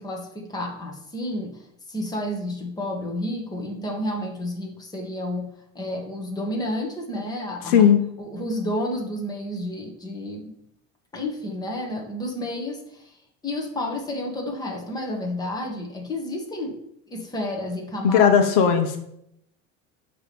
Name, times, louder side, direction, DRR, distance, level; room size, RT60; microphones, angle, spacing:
voice 1, 0.0-1.6 1.9-5.5 5.7-7.8 8.2-10.5 11.1-13.2 13.4-16.8 17.1-18.3 18.6-18.8, left 1 dB, 10° left, 0 dB, 1.5 m, -30 dB
voice 2, 7.7-8.0 18.0-19.0, left 7 dB, 80° left, 6 dB, 1.2 m, -16 dB
9.5 x 3.4 x 6.9 m, 0.75 s
cardioid pair, 165°, 31 cm